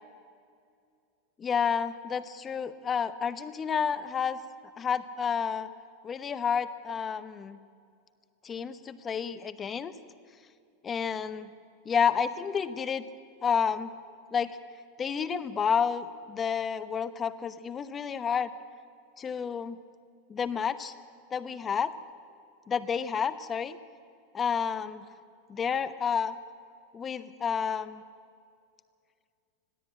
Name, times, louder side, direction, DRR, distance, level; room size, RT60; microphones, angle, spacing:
voice 1, 1.4-4.4 4.8-5.7 6.0-7.6 8.4-9.9 10.8-11.5 11.8-13.0 13.4-13.9 14.3-14.6 15.0-18.5 19.2-19.8 20.3-20.9 21.3-21.9 22.7-23.8 24.3-25.1 25.5-26.4 26.9-28.0, left 7 dB, 25° left, 14 dB, 1.0 m, -30 dB
21.0 x 14.0 x 8.7 m, 2.4 s
supercardioid pair, 135°, 0 cm